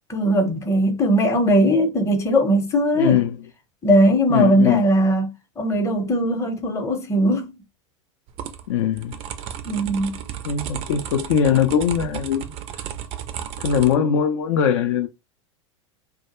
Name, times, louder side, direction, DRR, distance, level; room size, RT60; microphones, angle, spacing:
voice 1, 0.1-3.2 3.8-7.5 9.7-10.2, equal, 15° left, 0.7 m, -19 dB
voice 2, 3.0-3.4 4.3-4.8 8.7-9.2 10.4-12.6 13.6-15.1, left 8 dB, 65° left, 0.4 m, -21 dB
sound 1, 8.3-13.9, right 9 dB, 40° right, 0.4 m, -34 dB
2.2 x 2.0 x 2.9 m
hypercardioid pair, 100°, 17 cm